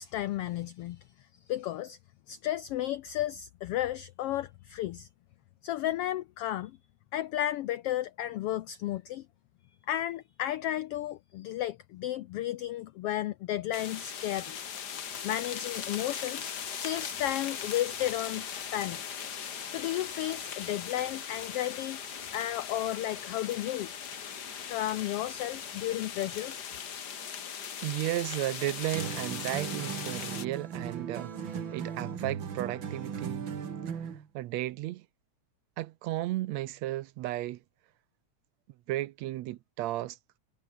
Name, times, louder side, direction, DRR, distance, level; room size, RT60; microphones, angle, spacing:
voice 1, 0.0-2.0 2.3-5.1 5.6-6.8 7.1-9.3 9.9-14.6 15.2-19.2 19.7-22.0 22.3-23.9 24.7-26.6, left 13 dB, 80° left, 1.3 m, -33 dB
sound 1, 13.7-30.5, left 7 dB, 45° left, 1.6 m, -39 dB
voice 2, 27.8-31.3 31.7-33.5 34.3-35.1 35.8-37.6 38.9-40.2, right 15 dB, 75° right, 1.8 m, -34 dB
sound 2, 28.9-34.3, right 7 dB, 45° right, 2.4 m, -37 dB
omnidirectional pair, 3.4 m